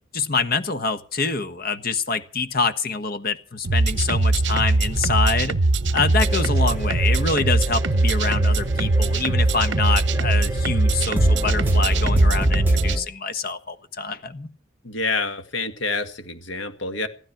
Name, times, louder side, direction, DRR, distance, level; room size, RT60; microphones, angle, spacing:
voice 1, 0.1-5.6 5.9-14.5, left 4 dB, 50° left, 10 dB, 1.3 m, -26 dB
sound 1, 3.6-13.0, right 2 dB, 60° right, 0.8 m, -21 dB
sound 2, 6.2-13.0, equal, 10° right, 2.0 m, -27 dB
voice 2, 14.8-17.1, left 3 dB, 70° left, 7 dB, 2.0 m, -27 dB
15.5 x 13.0 x 6.0 m, 0.41 s
head